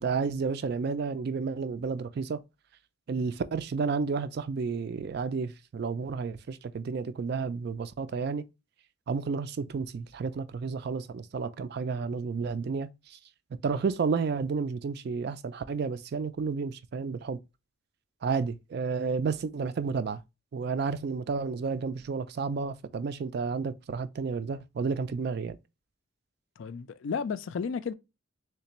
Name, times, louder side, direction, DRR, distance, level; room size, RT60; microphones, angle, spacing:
voice 1, 0.0-2.4 3.1-8.4 9.1-13.2 13.6-17.4 18.2-20.2 20.5-25.6, right 5 dB, 50° right, 0.3 m, -31 dB
voice 2, 26.6-27.9, left 6 dB, 65° left, 0.4 m, -33 dB
3.4 x 3.2 x 2.9 m
head